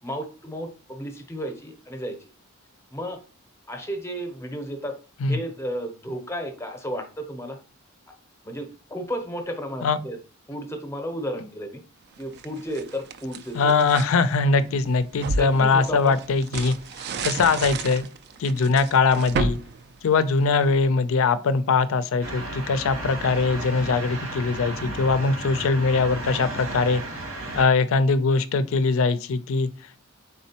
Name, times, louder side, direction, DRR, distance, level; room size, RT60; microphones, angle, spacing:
voice 1, 0.0-2.3 2.9-3.2 3.7-4.9 5.3-7.6 8.1-8.2 8.4-10.2 10.5-11.8 12.2-13.7 15.4-16.1, equal, 15° left, 5 dB, 0.7 m, -33 dB
sound 1, 12.2-14.1 14.7-20.7, right 3 dB, 50° right, 0.3 m, -32 dB
voice 2, 13.5-16.8 17.2-18.1 18.4-19.6 20.0-27.0 27.5-29.7, left 4 dB, 70° left, 13 dB, 0.4 m, -21 dB
sound 2, 22.2-27.6, right 1 dB, 85° right, 1.6 m, -34 dB
4.1 x 3.6 x 2.8 m, 0.36 s
head